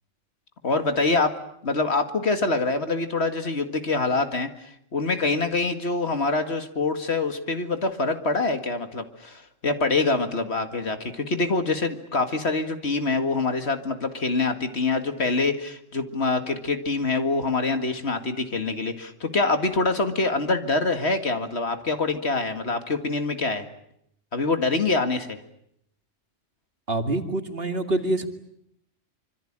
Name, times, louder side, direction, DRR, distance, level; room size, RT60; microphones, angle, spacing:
voice 1, 0.6-1.4 1.6-23.7 24.3-25.4, left 3 dB, 60° left, 8 dB, 2.3 m, -25 dB
voice 2, 26.9-28.3, right 2 dB, 50° right, 7 dB, 2.5 m, -26 dB
26.0 x 25.5 x 8.8 m, 0.73 s
omnidirectional pair, 1.3 m